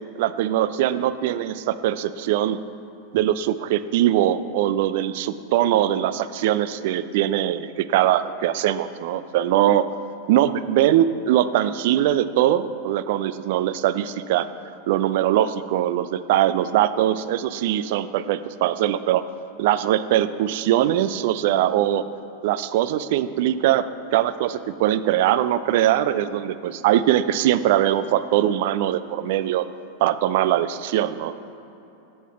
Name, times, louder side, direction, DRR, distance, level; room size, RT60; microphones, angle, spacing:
voice 1, 0.2-2.6 3.1-9.8 10.3-14.5 14.9-19.2 19.6-22.1 22.4-23.8 24.1-29.7 30.0-31.3, right 12 dB, 50° right, 14 dB, 0.3 m, -21 dB
8.2 x 6.6 x 5.6 m, 3.0 s
figure-of-eight pair, 90°, 0 cm